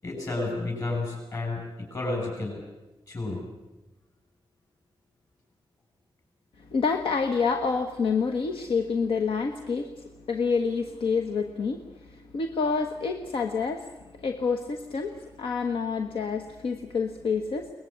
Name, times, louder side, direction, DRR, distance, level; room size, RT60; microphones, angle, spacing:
voice 1, 0.0-2.6 3.1-3.4, left 2 dB, 40° left, 1 dB, 6.6 m, -31 dB
voice 2, 6.7-13.9 14.1-17.7, left 5 dB, 90° left, 6 dB, 1.3 m, -28 dB
22.5 x 20.5 x 8.8 m, 1.0 s
wide cardioid pair, 130°, 9 cm